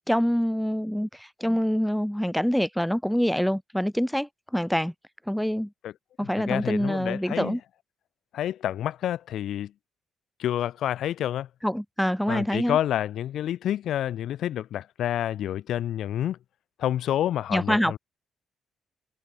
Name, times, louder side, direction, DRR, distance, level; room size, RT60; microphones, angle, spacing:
voice 1, 0.1-4.9 5.3-5.7 6.2-7.6 11.6-12.8 17.5-18.0, equal, ahead, 5.1 m, -25 dB
voice 2, 6.2-7.6 8.3-9.7 10.4-11.5 12.3-16.4 16.8-18.0, left 11 dB, 75° left, 4.4 m, -28 dB
cardioid pair, 90°, 0 cm